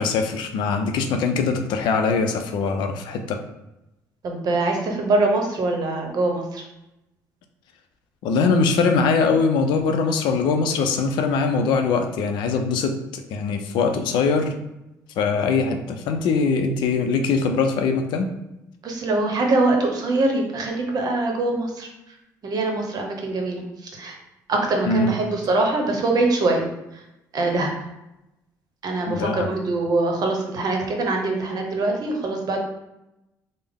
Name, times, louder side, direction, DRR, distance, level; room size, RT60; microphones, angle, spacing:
voice 1, 0.0-3.4 8.2-14.5 15.2-18.3 24.9-25.2 29.1-29.5, left 4 dB, 70° left, 5 dB, 0.4 m, -22 dB
voice 2, 4.2-6.6 18.8-21.9 22.4-23.6 23.9-24.2 24.5-26.7 27.3-27.7 28.8-32.6, right 2 dB, 55° right, 2 dB, 0.8 m, -23 dB
3.4 x 2.0 x 3.5 m, 0.92 s
hypercardioid pair, 55°, 8 cm